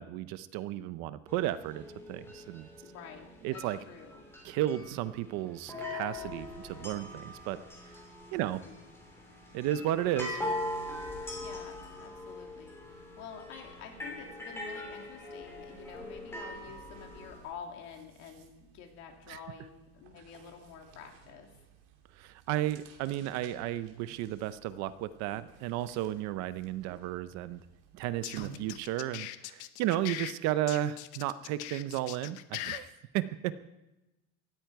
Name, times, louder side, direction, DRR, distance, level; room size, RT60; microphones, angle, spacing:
voice 1, 0.0-2.7 3.4-3.8 4.4-7.6 7.9-8.0 8.3-8.6 9.5-10.5 19.3-19.4 22.2-27.6 27.9-33.6, right 13 dB, 50° right, 14 dB, 0.7 m, -33 dB
sound 1, 1.3-17.4, left 2 dB, 5° left, 3.3 m, -42 dB
voice 2, 2.8-4.3 8.4-8.9 11.4-21.5, left 6 dB, 50° left, 2 dB, 2.8 m, -49 dB
sound 2, 15.2-15.4 15.7-29.1, right 6 dB, 65° right, 2.9 m, -56 dB
sound 3, 28.0-30.3 30.7-32.8, left 16 dB, 75° left, 1.0 m, -40 dB
18.5 x 14.0 x 4.7 m, 1.0 s
cardioid pair, 175°, 35 cm